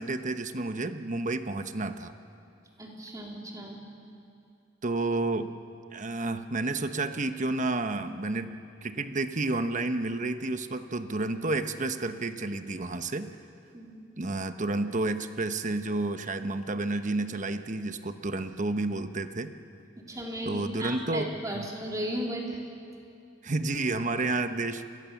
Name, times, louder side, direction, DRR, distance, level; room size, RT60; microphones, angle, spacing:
voice 1, 0.0-2.1 4.8-5.5 5.9-13.4 14.2-19.5 20.4-21.7 23.4-24.9, right 2 dB, 40° right, 9 dB, 1.0 m, -30 dB
voice 2, 2.8-3.8 13.7-13.9 20.1-22.6, right 1 dB, 20° right, -1 dB, 3.8 m, -35 dB
29.5 x 22.0 x 7.2 m, 2.5 s
head